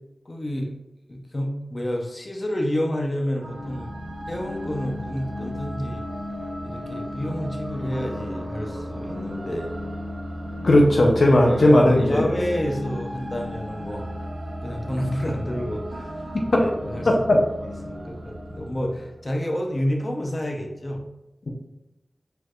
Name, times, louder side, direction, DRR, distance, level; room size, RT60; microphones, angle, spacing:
voice 1, 0.2-0.7 1.1-3.9 4.3-6.0 6.6-9.7 11.3-14.1 14.6-16.2 16.6-21.0, equal, 35° left, 1 dB, 0.8 m, -29 dB
sound 1, 3.4-19.6, equal, 75° right, 0.8 m, -34 dB
voice 2, 10.6-12.2 16.3-16.4 17.1-17.4, left 1 dB, 65° left, 0 dB, 0.7 m, -16 dB
4.6 x 4.4 x 2.5 m, 0.96 s
wide cardioid pair, 90°, 0 cm